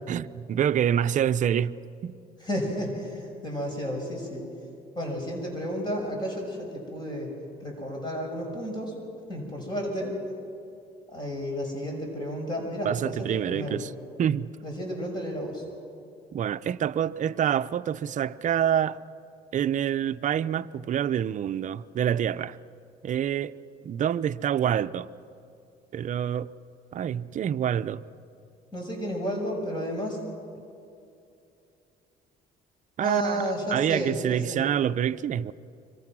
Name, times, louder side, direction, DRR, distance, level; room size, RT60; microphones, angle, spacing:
voice 1, 0.1-1.8 2.0-2.2 12.8-13.9 14.2-14.5 16.3-19.0 19.5-22.6 23.0-23.5 23.8-25.1 25.9-26.5 26.9-28.1 33.0-35.5, right 9 dB, 50° right, 0.6 m, -27 dB
voice 2, 2.4-4.5 4.9-7.3 7.6-9.0 9.3-10.1 11.1-13.8 14.6-15.6 28.7-30.2 33.0-34.6, equal, 25° left, 6.3 m, -32 dB
25.0 x 25.0 x 6.1 m
cardioid pair, 110°, 17 cm